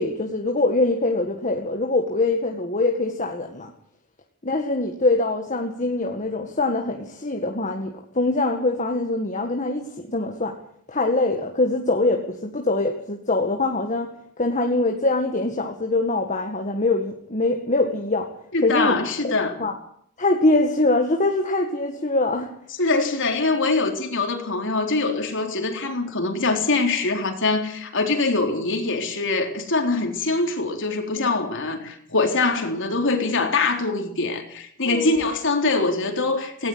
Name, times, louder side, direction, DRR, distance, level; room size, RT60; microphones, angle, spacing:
voice 1, 0.0-3.7 4.4-10.5 10.9-14.1 14.4-18.3 18.6-19.0 19.2-19.3 19.6-19.7 20.2-22.5 31.1-31.3 34.9-35.2, left 2 dB, 35° left, 1.9 m, -23 dB
voice 2, 18.5-19.5 22.8-36.7, left 3 dB, 55° left, 3.9 m, -23 dB
18.0 x 17.5 x 8.1 m
head